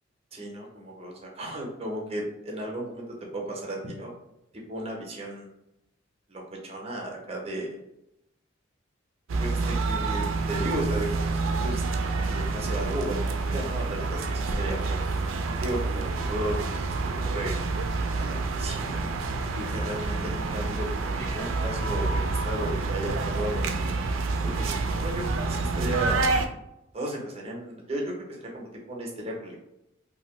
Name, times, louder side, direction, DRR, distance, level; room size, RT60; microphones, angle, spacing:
voice 1, 0.3-3.0 3.5-4.1 4.7-5.5 6.3-7.8 9.4-11.8 12.3-15.0 15.6-16.6 17.0-17.6 18.2-19.1 19.6-23.9 24.4-26.2 26.9-29.6, right 1 dB, 30° right, -1 dB, 0.7 m, -35 dB
sound 1, 9.3-26.5, right 3 dB, 80° right, 0.4 m, -28 dB
2.8 x 2.6 x 3.0 m, 0.85 s
head